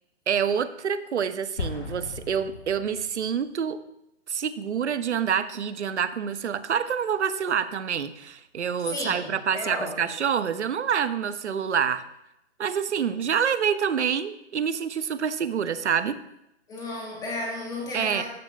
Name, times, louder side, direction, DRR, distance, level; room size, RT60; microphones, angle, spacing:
voice 1, 0.3-3.8 4.3-12.0 12.6-16.2 17.9-18.2, right 7 dB, 75° right, 13 dB, 0.7 m, -27 dB
Explosion, 1.6-3.4, left 4 dB, 60° left, 2.5 m, -36 dB
voice 2, 8.9-10.1 16.7-18.2, left 2 dB, 10° left, -1 dB, 1.0 m, -33 dB
12.5 x 6.8 x 2.3 m, 0.83 s
hypercardioid pair, 140°, 35 cm